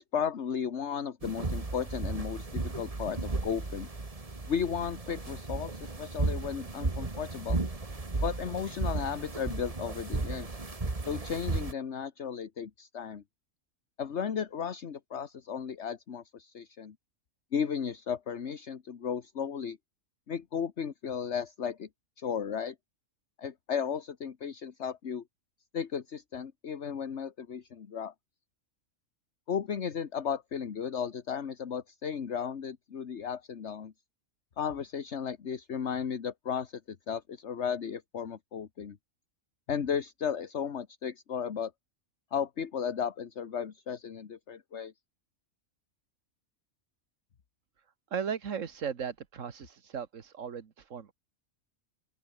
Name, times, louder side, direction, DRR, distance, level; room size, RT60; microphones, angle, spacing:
voice 1, 0.0-3.9 4.5-7.6 8.2-10.6 11.1-13.2 14.0-16.9 17.5-19.8 20.3-21.9 22.2-22.7 23.4-25.2 25.7-28.1 29.5-33.9 34.6-39.0 39.7-41.7 42.3-44.9, left 7 dB, 60° left, 1.5 m, -35 dB
sound 1, 1.2-11.7, right 3 dB, 25° right, 1.9 m, -34 dB
voice 2, 48.1-51.1, right 7 dB, 70° right, 1.8 m, -36 dB
open air
omnidirectional pair, 1.4 m